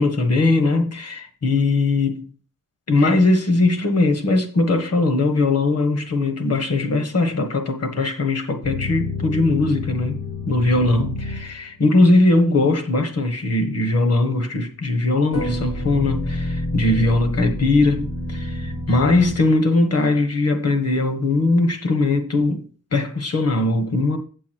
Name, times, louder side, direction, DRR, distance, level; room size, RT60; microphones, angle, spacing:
voice 1, 0.0-2.3 2.9-10.2 10.5-22.7 22.9-24.2, left 2 dB, 50° left, 1.4 m, -20 dB
sound 1, 8.6-11.8 15.3-19.9, left 2 dB, 80° left, 2.5 m, -29 dB
8.4 x 7.1 x 4.6 m
wide cardioid pair, 135°, 31 cm